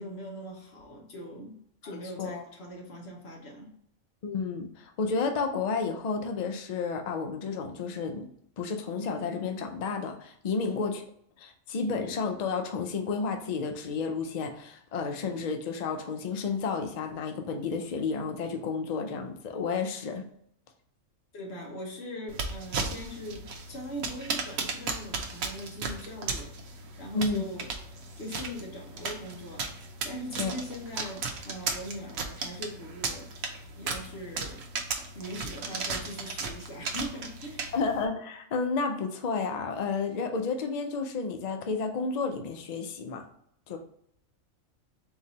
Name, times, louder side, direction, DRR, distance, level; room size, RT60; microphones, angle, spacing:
voice 1, 0.0-1.6 1.8-3.7 10.6-10.8 21.3-26.5 27.0-27.7 28.2-29.7 30.0-33.3 33.8-34.7 35.1-37.7, equal, 50° left, 0 dB, 1.3 m, -41 dB
voice 2, 4.2-8.3 8.6-11.0 11.4-20.3 27.1-27.4 30.4-30.5 37.7-43.2 43.7-43.8, left 4 dB, 85° left, 5 dB, 0.3 m, -31 dB
sound 1, 22.3-38.1, right 4 dB, 80° right, 1.1 m, -36 dB
3.9 x 2.7 x 4.1 m, 0.68 s
omnidirectional pair, 1.4 m